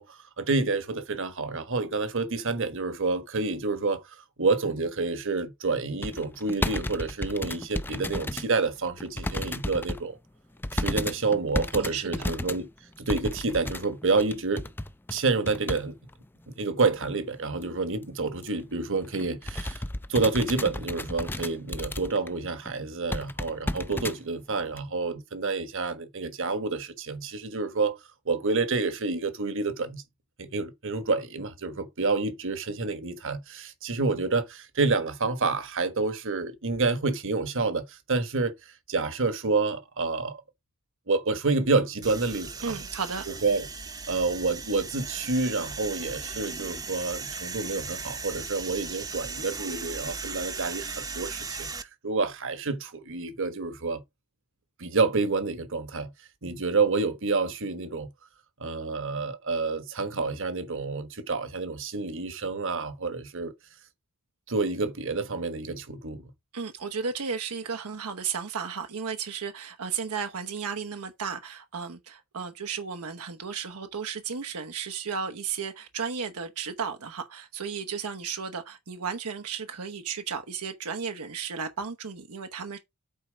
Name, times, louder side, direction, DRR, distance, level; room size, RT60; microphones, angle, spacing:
voice 1, 0.0-10.2 10.7-12.7 13.0-14.7 15.1-15.9 16.6-19.8 20.1-28.0 28.2-30.0 30.4-38.5 38.9-40.4 41.1-42.8 43.3-43.7 44.1-54.0 54.8-56.1 56.4-58.1 58.6-63.5 64.5-66.3, right 3 dB, 60° right, 1.4 m, -28 dB
sound 1, 6.0-8.5 8.9-10.0 10.6-15.9 16.1-16.2 16.8-17.1 17.5-17.6 17.9-18.0 18.4-18.6 19.0-22.3 22.6-22.7 23.1-24.2 24.8-24.9, left 1 dB, 10° left, 0.4 m, -33 dB
voice 2, 11.7-12.3 42.6-43.3 66.5-82.8, right 6 dB, 85° right, 1.0 m, -34 dB
sound 2, 42.0-51.8, right 4 dB, 15° right, 0.8 m, -37 dB
8.4 x 4.4 x 5.0 m
head